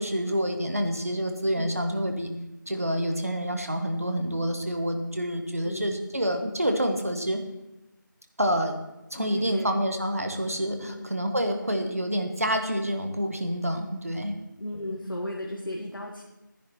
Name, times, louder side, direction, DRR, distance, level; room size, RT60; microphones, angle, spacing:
voice 1, 0.0-2.3 2.7-7.4 8.4-8.8 9.1-14.3, equal, 45° right, 5 dB, 1.4 m, -28 dB
voice 2, 1.5-1.8 5.6-6.1 9.1-9.7 10.8-11.1 14.6-16.2, left 1 dB, 85° left, -2 dB, 2.1 m, -35 dB
12.5 x 10.5 x 4.5 m, 0.99 s
figure-of-eight pair, 180°, 11 cm